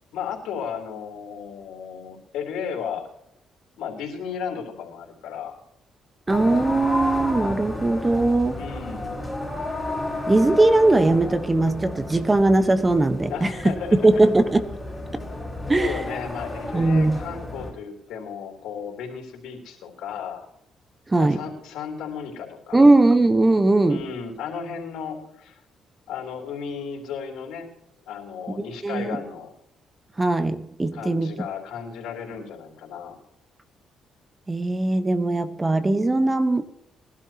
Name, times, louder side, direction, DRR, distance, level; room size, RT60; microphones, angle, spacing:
voice 1, 0.1-3.1 3.8-5.5 8.5-9.2 13.3-14.1 15.8-20.5 21.2-22.9 23.9-25.6 26.1-27.7 28.1-29.5 30.9-33.2, left 7 dB, 90° left, 1 dB, 3.8 m, -34 dB
sound 1, 6.3-17.7, left 2 dB, 10° left, 5.1 m, -32 dB
voice 2, 6.3-8.6 10.3-14.7 15.7-16.0 16.7-17.2 21.1-21.4 22.7-24.0 28.8-29.2 30.2-31.5 34.5-36.6, right 2 dB, 20° right, 10 dB, 1.2 m, -20 dB
21.0 x 12.0 x 3.0 m, 0.79 s
cardioid pair, 90°, 0 cm